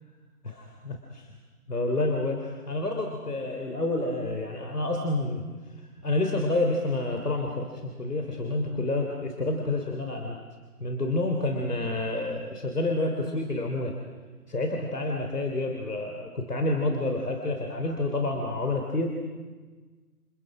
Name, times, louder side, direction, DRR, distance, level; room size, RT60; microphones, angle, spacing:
voice 1, 0.4-1.3 1.7-5.4 6.0-10.4 10.8-13.9 14.5-19.1, left 2 dB, 90° left, 2 dB, 3.4 m, -29 dB
29.5 x 27.0 x 5.0 m, 1.4 s
figure-of-eight pair, 155°, 45 cm